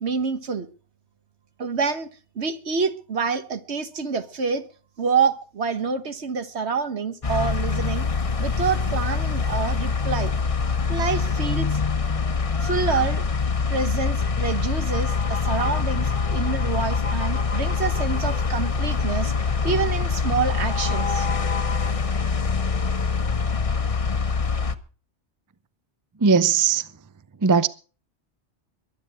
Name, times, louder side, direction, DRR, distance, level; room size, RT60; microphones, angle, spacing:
voice 1, 0.0-0.7 1.6-2.1 2.3-4.6 5.0-8.1 8.4-10.3 10.9-11.8 12.6-13.2 13.7-19.3 19.6-21.3, right 5 dB, 70° right, 1.6 m, -27 dB
sound 1, 7.2-24.8, left 5 dB, 30° left, 0.9 m, -24 dB
voice 2, 26.2-26.9 27.4-27.7, right 5 dB, 25° right, 0.5 m, -18 dB
22.5 x 9.4 x 4.8 m
omnidirectional pair, 1.2 m